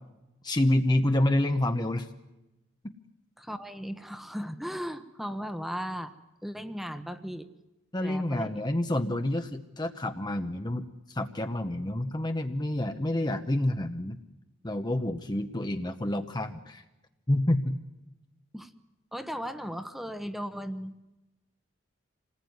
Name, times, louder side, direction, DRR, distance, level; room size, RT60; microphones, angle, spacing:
voice 1, 0.4-2.1 7.9-14.2 14.6-16.8 17.3-17.8, left 1 dB, 20° left, 6 dB, 0.9 m, -28 dB
voice 2, 3.4-6.1 6.4-7.5 8.0-8.6 18.5-18.7 19.1-20.9, equal, ahead, 9 dB, 1.1 m, -36 dB
27.0 x 19.5 x 9.5 m, 1.0 s
head